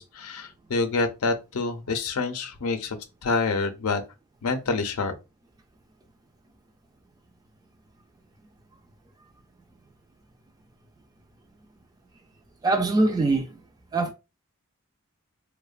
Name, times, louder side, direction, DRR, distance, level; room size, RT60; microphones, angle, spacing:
voice 1, 0.0-4.0 4.4-5.1, left 3 dB, 75° left, 0.5 m, -27 dB
voice 2, 12.6-13.5 13.9-14.1, right 2 dB, 15° right, 0.3 m, -22 dB
2.8 x 2.1 x 2.4 m
head